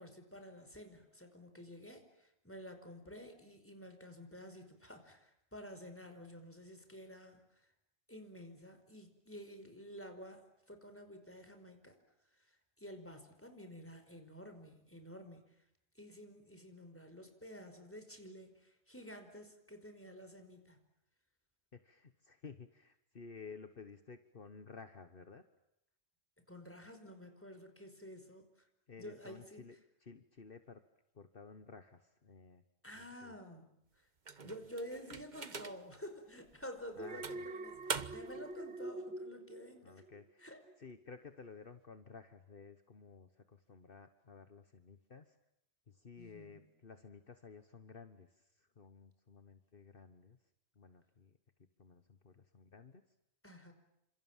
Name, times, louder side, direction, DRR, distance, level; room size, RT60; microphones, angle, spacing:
voice 1, 0.0-7.7 8.1-12.0 12.3-15.5 16.0-20.8 26.5-28.7 29.0-29.6 32.8-34.1 34.4-40.0 40.4-40.6 46.2-46.6 53.4-53.7, equal, 10° left, 6 dB, 4.9 m, -51 dB
voice 2, 21.7-25.4 28.9-30.8 31.1-32.6 32.9-33.3 34.3-34.5 37.0-37.5 39.8-40.5 40.8-45.4 45.9-50.4 50.7-51.4 51.8-53.0, left 5 dB, 55° left, 9 dB, 1.5 m, -54 dB
sound 1, 34.3-36.0 36.5-36.7 37.2-38.4, right 4 dB, 45° right, 1.3 m, -43 dB
Alarm, 37.0-40.3 40.7-41.0, right 2 dB, 75° right, 1.5 m, -46 dB
29.5 x 27.0 x 7.4 m, 0.82 s
omnidirectional pair, 1.1 m